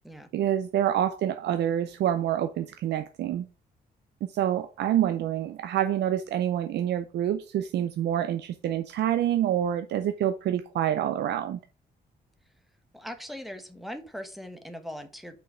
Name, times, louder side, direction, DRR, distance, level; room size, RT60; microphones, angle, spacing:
voice 1, 0.3-3.5 4.3-11.6, right 11 dB, 80° right, 0.5 m, -27 dB
voice 2, 12.9-15.4, equal, ahead, 1.1 m, -40 dB
5.5 x 4.4 x 6.2 m
cardioid pair, 125°, 17 cm